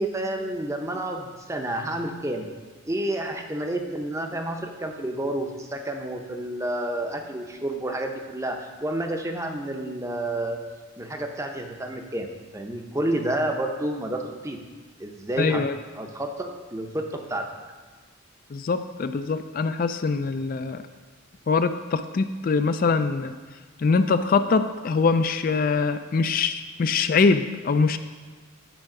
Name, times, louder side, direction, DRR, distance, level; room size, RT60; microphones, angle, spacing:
voice 1, 0.0-2.5 2.9-10.6 11.0-14.6 15.0-15.6 15.9-17.5, right 1 dB, 15° right, 4 dB, 0.6 m, -30 dB
voice 2, 15.4-15.8 18.5-20.8 21.5-23.3 23.8-28.0, left 4 dB, 45° left, 10 dB, 0.3 m, -23 dB
9.1 x 4.7 x 5.9 m, 1.4 s
head